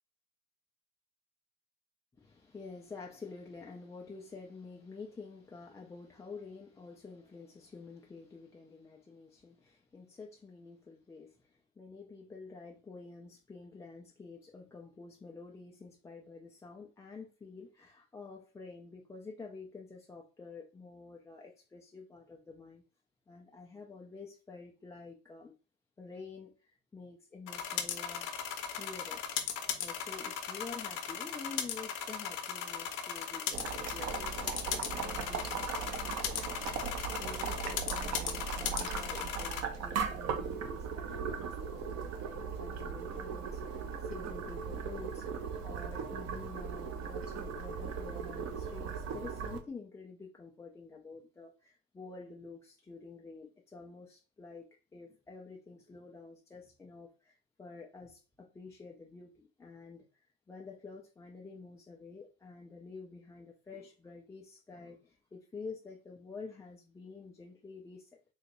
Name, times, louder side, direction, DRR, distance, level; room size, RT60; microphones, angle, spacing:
voice 1, 2.2-22.8 23.3-25.5 26.0-28.3 28.8-29.2 29.8-45.3 45.6-54.7 54.9-68.1, left 4 dB, 10° left, 0.3 m, -49 dB
sound 1, 27.5-39.6, left 8 dB, 55° left, 0.7 m, -38 dB
Boiling, 33.5-49.6, right 6 dB, 50° right, 0.8 m, -38 dB
3.8 x 2.1 x 3.0 m
hypercardioid pair, 80°, 36 cm